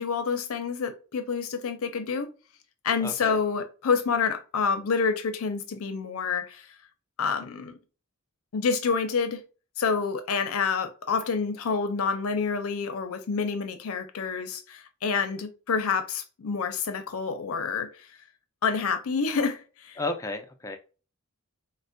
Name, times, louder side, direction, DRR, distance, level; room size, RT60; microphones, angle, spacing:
voice 1, 0.0-2.3 2.8-6.7 7.2-7.8 8.5-9.4 9.8-17.9 18.6-20.0, left 5 dB, 70° left, 0.5 m, -28 dB
voice 2, 3.0-3.4 20.0-20.8, left 2 dB, 15° left, 0.4 m, -33 dB
4.2 x 2.1 x 2.6 m
head